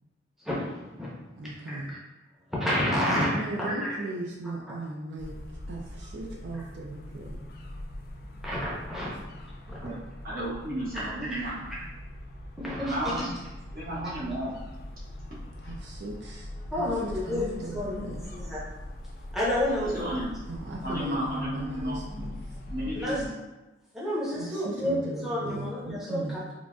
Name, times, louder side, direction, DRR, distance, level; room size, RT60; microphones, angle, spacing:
voice 1, 0.4-1.1 1.7-2.0 2.6-3.9 8.4-9.1 9.7-9.8 10.9-11.0 11.3-11.5 12.6-13.3 16.7-18.6 19.3-20.0 23.0-23.2 23.9-26.4, left 1 dB, ahead, -8 dB, 0.6 m, -30 dB
voice 2, 1.4-2.0 3.3-5.4 5.7-7.4 15.6-16.5 16.7-18.2 20.5-22.3 24.2-26.4, right 2 dB, 80° right, 0 dB, 0.4 m, -37 dB
sound 1, 5.2-23.3, left 1 dB, 55° left, 0.3 m, -42 dB
voice 3, 10.2-11.8 12.8-13.3 13.7-14.6 17.4-17.5 17.8-18.0 19.8-20.3 20.7-22.3 22.7-23.3 25.4-25.6 25.9-26.0, equal, 50° right, -8 dB, 1.1 m, -33 dB
3.6 x 2.5 x 2.2 m, 1.1 s
head